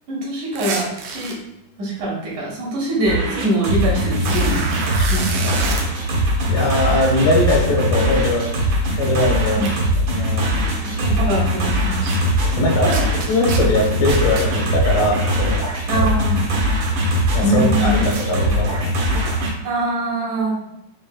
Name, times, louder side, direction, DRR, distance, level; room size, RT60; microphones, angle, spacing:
voice 1, 0.1-1.3 1.8-4.7 5.1-5.6 9.5-9.8 10.8-12.3 12.8-13.1 15.9-16.4 17.4-18.0 19.6-20.6, right 1 dB, 70° right, -4 dB, 2.7 m, -23 dB
sound 1, 0.6-1.3 3.5-3.6 4.1-5.8 9.2-9.3 9.6-9.7 12.1-12.2 12.9-14.5 18.1-18.2, right 5 dB, 90° right, 1.4 m, -28 dB
sound 2, 3.0-19.5, equal, 55° right, 1.4 m, -21 dB
voice 2, 6.5-8.5 9.0-9.7 10.1-10.5 12.5-12.9 13.3-15.6 16.0-16.1 17.3-18.8, left 2 dB, 80° left, -2 dB, 2.8 m, -20 dB
7.1 x 3.2 x 2.3 m, 0.85 s
omnidirectional pair, 3.7 m